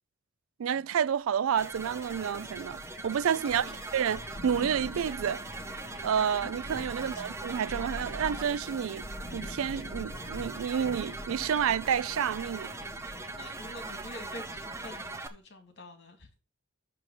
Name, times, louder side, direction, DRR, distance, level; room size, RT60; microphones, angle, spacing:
voice 1, 0.6-3.6 3.9-5.4 6.0-9.0 9.3-12.7, right 8 dB, 70° right, 0.3 m, -29 dB
Thunder, 1.5-15.2, left 1 dB, 25° left, 1.4 m, -45 dB
sound 1, 1.6-15.3, right 2 dB, 10° right, 0.7 m, -41 dB
voice 2, 3.4-3.8 6.9-7.2 13.3-16.3, left 1 dB, 50° left, 2.2 m, -47 dB
6.3 x 5.9 x 7.1 m
head